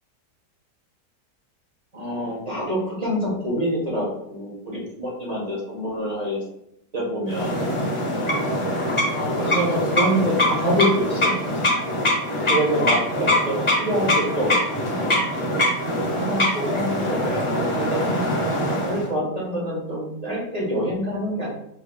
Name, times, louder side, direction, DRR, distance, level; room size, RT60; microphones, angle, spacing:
voice 1, 1.9-6.4 6.9-7.6 9.1-11.5 11.7-11.8 12.5-14.6 15.1-15.2 15.9-18.0 18.8-21.6, equal, 25° right, -5 dB, 1.2 m, -26 dB
sound 1, 7.3-19.1, left 1 dB, 30° left, 0.6 m, -23 dB
5.7 x 3.3 x 2.3 m, 0.78 s
omnidirectional pair, 1.8 m